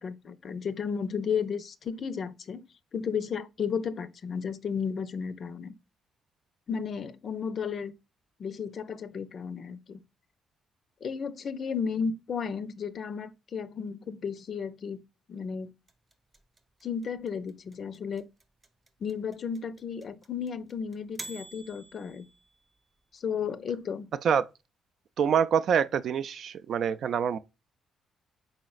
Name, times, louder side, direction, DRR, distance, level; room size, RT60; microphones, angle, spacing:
voice 1, 0.0-5.7 6.7-7.9 8.4-10.0 11.0-15.0 15.3-15.7 16.8-18.3 19.0-22.3 23.1-24.1, left 6 dB, 50° left, 0.5 m, -33 dB
sound 1, 15.9-22.9, right 2 dB, 25° right, 0.8 m, -47 dB
voice 2, 25.2-27.4, right 7 dB, 65° right, 0.3 m, -25 dB
4.1 x 4.0 x 2.3 m
cardioid pair, 90°, 0 cm